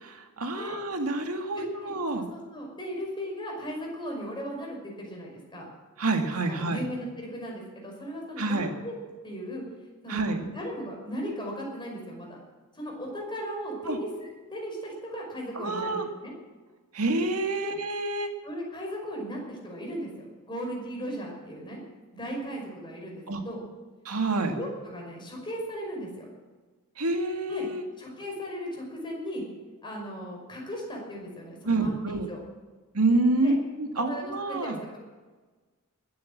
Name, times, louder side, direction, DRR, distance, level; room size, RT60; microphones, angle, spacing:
voice 1, 0.0-2.3 6.0-6.8 8.4-8.7 10.1-10.4 13.8-14.0 15.5-16.1 16.9-18.3 23.3-23.4 24.0-24.6 27.0-27.8 31.6-32.3 32.9-34.8, right 2 dB, 80° right, 4 dB, 2.1 m, -27 dB
voice 2, 1.5-5.7 6.5-8.9 9.2-9.6 10.0-12.4 12.7-14.1 14.5-16.3 17.6-17.7 18.4-21.8 22.1-23.6 24.5-26.3 27.5-27.7 28.0-29.4 29.8-32.4 33.4-33.5 34.0-35.0, equal, 20° left, -1 dB, 5.5 m, -37 dB
20.5 x 9.4 x 7.4 m, 1.3 s
head